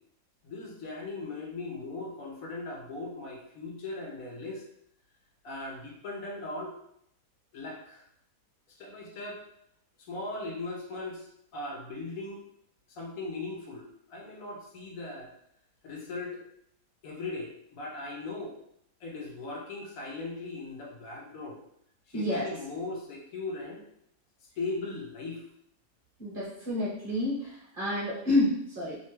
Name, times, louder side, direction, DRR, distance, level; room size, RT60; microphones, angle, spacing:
voice 1, 0.4-4.6 5.4-6.7 7.5-8.0 8.8-9.4 10.1-12.4 12.9-15.3 15.8-16.4 17.0-18.5 19.0-21.6 22.1-23.8 24.6-25.4, left 3 dB, 70° left, -1 dB, 1.1 m, -38 dB
voice 2, 22.1-22.5 26.2-29.0, left 1 dB, 45° right, -7 dB, 0.8 m, -29 dB
2.8 x 2.2 x 3.1 m, 0.72 s
omnidirectional pair, 1.6 m